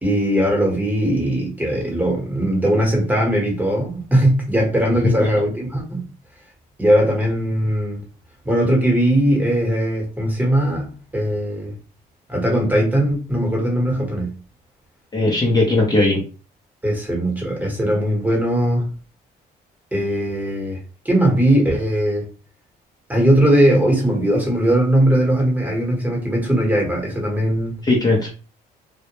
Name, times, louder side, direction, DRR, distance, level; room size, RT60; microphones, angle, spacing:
voice 1, 0.0-6.0 6.8-8.0 8.4-11.7 12.3-14.3 16.8-18.9 19.9-20.8 21.0-22.2 23.1-27.7, right 1 dB, 10° right, 1.0 m, -19 dB
voice 2, 15.1-16.2 27.8-28.3, left 2 dB, 25° left, 0.6 m, -18 dB
2.1 x 2.1 x 2.9 m
cardioid pair, 110°, 17 cm